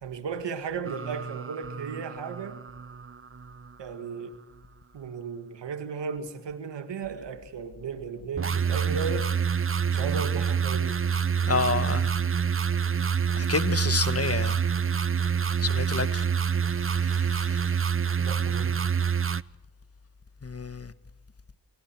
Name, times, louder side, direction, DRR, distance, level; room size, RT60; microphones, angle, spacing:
voice 1, 0.0-2.6 3.8-4.4 4.9-9.3 9.9-11.0 18.2-18.8, right 5 dB, 85° right, 1.9 m, -35 dB
sound 1, 0.9-3.7 8.4-19.4, right 7 dB, 30° right, 0.7 m, -27 dB
voice 2, 11.5-12.1 13.4-14.6 15.6-16.2 16.9-17.7 20.4-20.9, left 4 dB, 35° left, 1.4 m, -29 dB
28.0 x 23.5 x 4.6 m
cardioid pair, 45°, 41 cm